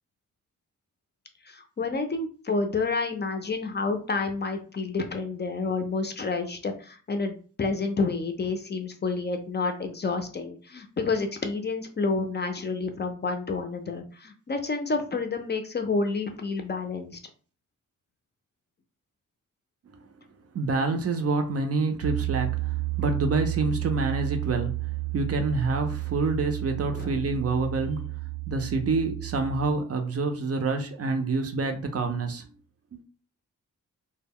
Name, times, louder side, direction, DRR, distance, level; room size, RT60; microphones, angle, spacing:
voice 1, 1.4-17.2 26.9-27.2, left 4 dB, 35° left, 0.4 m, -29 dB
voice 2, 20.5-28.2 28.5-32.4 32.9-33.0, right 3 dB, 45° right, 0.5 m, -27 dB
Piano, 22.0-29.7, right 19 dB, 85° right, 0.7 m, -32 dB
2.1 x 2.1 x 3.5 m
cardioid pair, 90°, 32 cm